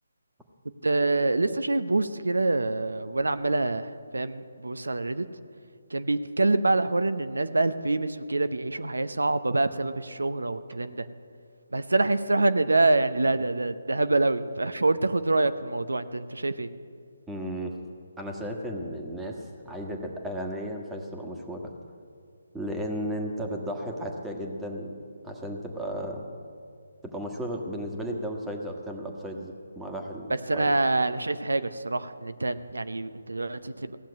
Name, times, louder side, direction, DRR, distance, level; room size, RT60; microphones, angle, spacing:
voice 1, 0.8-5.3 5.9-11.0 11.7-16.7 30.5-34.0, right 2 dB, 85° right, 12 dB, 0.7 m, -26 dB
voice 2, 17.3-17.8 18.2-21.7 22.5-24.9 25.2-26.2 27.0-30.8, equal, 5° right, 1 dB, 1.5 m, -34 dB
16.0 x 7.3 x 9.6 m, 2.3 s
figure-of-eight pair, 150°, 0 cm